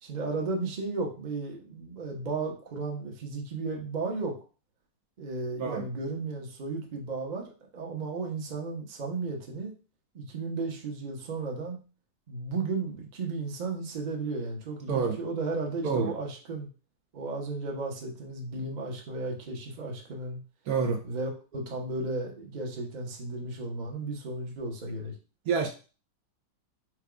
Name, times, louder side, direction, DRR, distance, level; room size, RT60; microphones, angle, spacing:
voice 1, 0.0-4.4 5.2-9.7 10.1-11.8 12.3-16.7 17.1-20.4 21.0-25.1, right 3 dB, 35° right, 0.7 m, -34 dB
voice 2, 14.9-15.2 15.8-16.1 20.7-21.0 25.5-25.7, right 5 dB, 70° right, 0.9 m, -27 dB
4.6 x 2.3 x 4.8 m
omnidirectional pair, 2.0 m